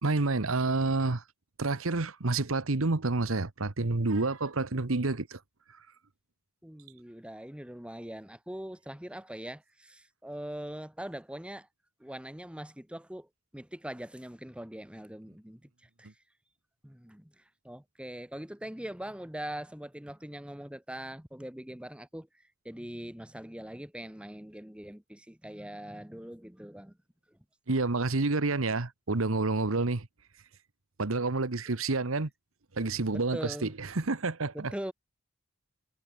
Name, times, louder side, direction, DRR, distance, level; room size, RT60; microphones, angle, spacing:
voice 1, 0.0-1.2 1.6-5.4 27.7-30.1 31.0-32.3 32.7-34.7, right 3 dB, 80° right, 1.2 m, -29 dB
voice 2, 6.6-11.7 12.0-16.1 16.8-27.0 27.3-27.4 31.7-31.8 33.1-33.7 34.5-34.9, right 1 dB, 5° right, 1.2 m, -42 dB
head